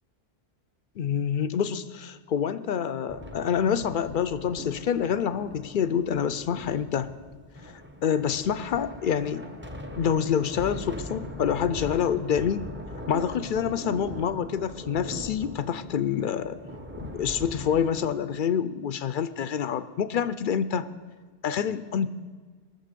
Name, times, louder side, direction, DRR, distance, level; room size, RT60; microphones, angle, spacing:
voice 1, 1.0-7.1 7.6-7.7 8.0-9.4 10.0-12.7 13.1-16.6 17.0-20.9 21.4-22.1, left 8 dB, 60° left, 14 dB, 0.6 m, -27 dB
sound 1, 3.1-18.1, equal, 10° right, 0.7 m, -41 dB
18.5 x 6.8 x 6.7 m, 1.5 s
omnidirectional pair, 1.1 m